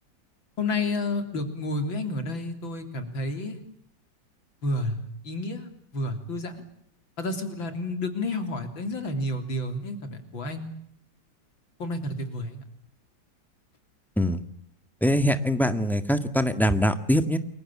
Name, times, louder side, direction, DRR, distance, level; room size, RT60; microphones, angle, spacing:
voice 1, 0.6-3.6 4.6-6.6 7.2-10.7 11.8-12.6, left 2 dB, 90° left, 7 dB, 4.1 m, -30 dB
voice 2, 15.0-17.4, equal, ahead, 9 dB, 1.6 m, -23 dB
29.5 x 23.0 x 8.8 m, 0.70 s
omnidirectional pair, 2.1 m